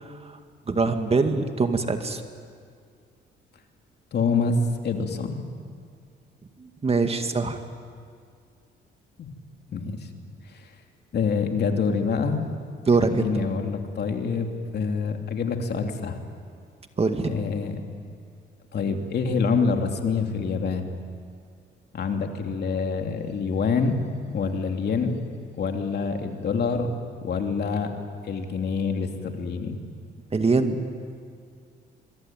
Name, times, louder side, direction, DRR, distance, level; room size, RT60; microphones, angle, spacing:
voice 1, 0.7-2.2 6.6-7.6 12.9-13.4 17.0-17.4 30.3-30.8, right 4 dB, 30° right, 6 dB, 2.1 m, -23 dB
voice 2, 4.1-4.6 4.8-5.4 9.2-9.3 9.7-10.1 10.5-10.6 11.1-12.4 13.0-16.2 17.2-17.8 18.7-20.9 21.9-24.0 24.3-25.1 25.6-26.9 27.2-27.9 28.2-29.8, left 5 dB, 55° left, 4 dB, 3.0 m, -26 dB
26.0 x 23.5 x 9.3 m, 2.2 s
cardioid pair, 90°, 20 cm